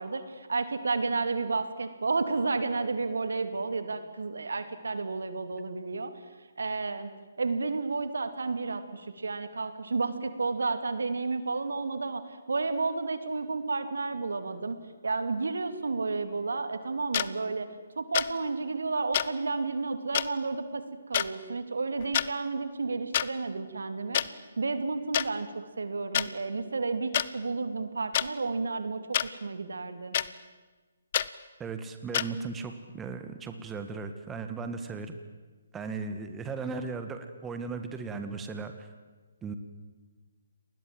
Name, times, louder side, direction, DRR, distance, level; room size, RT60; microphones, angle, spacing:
voice 1, 0.0-6.1 6.6-7.1 7.4-12.2 12.5-14.8 15.0-17.7 18.0-20.8 21.1-24.2 24.6-30.2, right 3 dB, 70° right, 10 dB, 2.6 m, -31 dB
sound 1, 17.1-17.3 18.1-18.3 19.1-19.3 20.1-20.3 21.1-21.3 22.0-22.3 23.1-23.3 24.1-24.3 25.1-25.3 26.1-26.3 27.1-27.3 28.1-28.3 29.1-29.3 30.1-30.3 31.1-31.3 32.1-32.3, left 10 dB, 40° left, 0.9 m, -26 dB
voice 2, 31.6-35.2 35.7-38.9 39.4-39.5, right 4 dB, 10° right, 7 dB, 1.6 m, -37 dB
30.0 x 20.5 x 7.7 m, 1.3 s
figure-of-eight pair, 140°, 0 cm